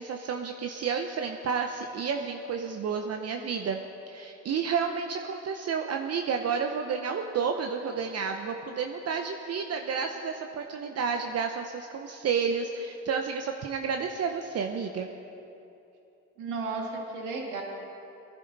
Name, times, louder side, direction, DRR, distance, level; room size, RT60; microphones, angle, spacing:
voice 1, 0.0-3.8 4.1-15.1, right 6 dB, 55° right, 4 dB, 0.8 m, -31 dB
voice 2, 16.4-17.6, right 3 dB, 85° right, 0 dB, 2.0 m, -34 dB
19.0 x 10.5 x 4.0 m, 2.8 s
cardioid pair, 90°, 30 cm